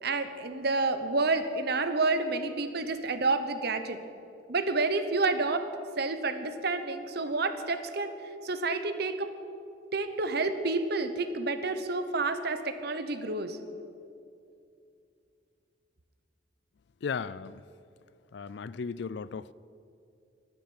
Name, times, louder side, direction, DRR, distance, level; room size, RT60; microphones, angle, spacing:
voice 1, 0.0-4.0 4.5-5.7 6.0-8.1 8.4-9.3 9.9-13.6, right 3 dB, 55° right, 1.0 m, -29 dB
voice 2, 17.0-17.6 18.3-19.5, left 5 dB, 60° left, 0.4 m, -36 dB
11.5 x 10.5 x 9.5 m
head